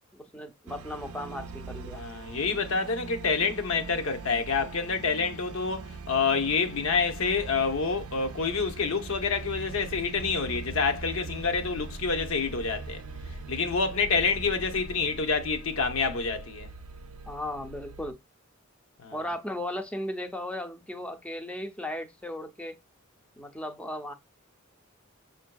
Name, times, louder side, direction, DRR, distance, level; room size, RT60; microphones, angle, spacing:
voice 1, 0.1-2.0 17.3-18.2 19.1-22.8 23.4-24.1, left 1 dB, 5° left, 0.5 m, -36 dB
sound 1, 0.7-18.1, right 3 dB, 85° right, 0.4 m, -41 dB
voice 2, 1.9-13.0 13.5-16.7 19.0-19.1, left 5 dB, 75° left, 0.7 m, -28 dB
6.7 x 2.6 x 2.2 m
head